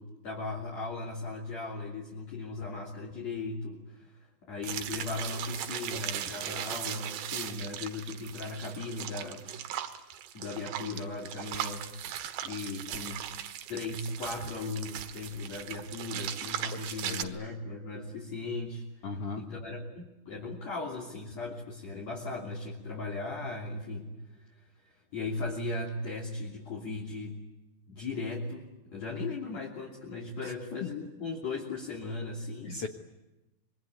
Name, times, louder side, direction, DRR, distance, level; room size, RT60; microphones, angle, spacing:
voice 1, 0.0-4.1 4.4-9.5 10.3-12.1 12.4-13.2 13.7-18.8 19.4-24.5 24.8-27.4 27.9-32.8, left 3 dB, 45° left, -3 dB, 4.0 m, -37 dB
sound 1, 4.6-17.3, right 10 dB, 90° right, 3.5 m, -38 dB
voice 2, 16.7-17.4 19.0-19.4 30.4-30.5 30.8-30.9 32.6-32.9, left 4 dB, 60° left, 5 dB, 1.5 m, -37 dB
26.5 x 23.0 x 9.5 m, 1.0 s
omnidirectional pair, 4.7 m